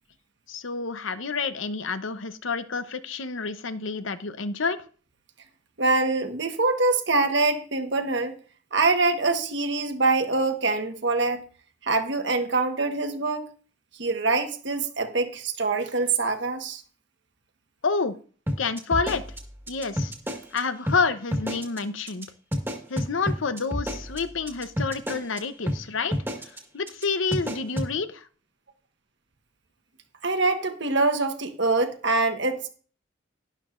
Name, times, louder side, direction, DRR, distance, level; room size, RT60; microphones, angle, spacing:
voice 1, 0.5-4.8 17.8-18.1 18.6-19.2 19.7-20.1 20.5-22.3 22.9-26.2 26.7-28.2, left 4 dB, 75° left, 0.8 m, -28 dB
voice 2, 5.8-8.4 8.7-11.4 11.8-13.5 14.0-16.8 30.2-32.7, right 3 dB, 60° right, 1.3 m, -24 dB
sound 1, 18.5-20.6 20.9-21.0 21.3-21.8 22.1-22.3 22.5-25.4 25.7-25.8 26.1-26.6 26.9-27.0 27.3-27.9, equal, 10° right, 1.6 m, -29 dB
12.0 x 11.0 x 2.5 m
head